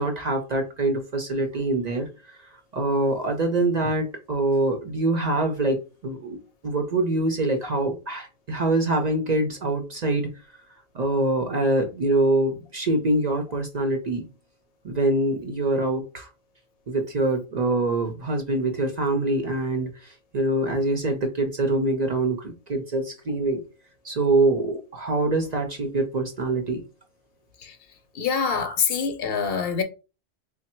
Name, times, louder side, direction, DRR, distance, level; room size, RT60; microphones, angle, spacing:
voice 1, 0.0-6.4 6.6-10.3 10.9-14.3 14.8-16.3 16.9-23.6 24.0-26.8, right 2 dB, 50° right, 0.6 m, -24 dB
voice 2, 28.1-29.8, left 6 dB, 65° left, 0.8 m, -25 dB
3.3 x 2.1 x 4.2 m
omnidirectional pair, 1.1 m